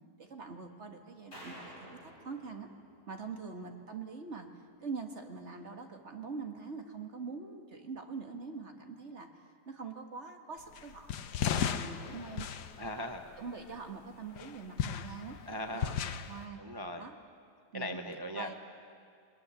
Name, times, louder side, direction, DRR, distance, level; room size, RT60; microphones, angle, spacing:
voice 1, 0.2-2.0 2.2-2.7 3.1-4.5 4.8-9.3 9.7-11.1 11.5-12.5 13.4-16.6 17.0-17.2 17.7-18.0 18.3-18.5, right 5 dB, 45° right, 4 dB, 1.8 m, -43 dB
sound 1, 1.3-3.6, equal, 35° left, 7.0 m, -52 dB
sound 2, 10.7-13.8 14.4-16.4, left 9 dB, 80° left, 1.4 m, -36 dB
voice 2, 12.8-13.4 15.5-16.0 16.6-17.1 17.7-18.5, left 1 dB, 20° right, 5 dB, 0.8 m, -39 dB
21.5 x 19.5 x 9.7 m, 2.3 s
omnidirectional pair, 1.7 m